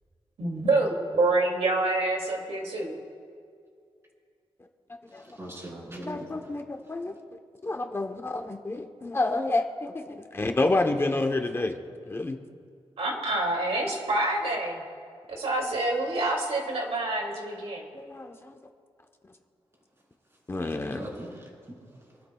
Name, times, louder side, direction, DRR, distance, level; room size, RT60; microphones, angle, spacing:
voice 1, 0.4-2.9 13.0-14.8 15.4-17.9, right 2 dB, 80° right, 0 dB, 2.5 m, -27 dB
voice 2, 5.1-6.6 20.3-20.4 20.6-22.3, right 1 dB, 25° right, -3 dB, 3.9 m, -42 dB
voice 3, 6.1-7.1 7.6-11.7 12.1-12.4 17.9-18.5 20.5-21.0, left 2 dB, 25° left, 4 dB, 0.9 m, -29 dB
27.5 x 12.5 x 2.3 m, 2.2 s
wide cardioid pair, 150°, 10 cm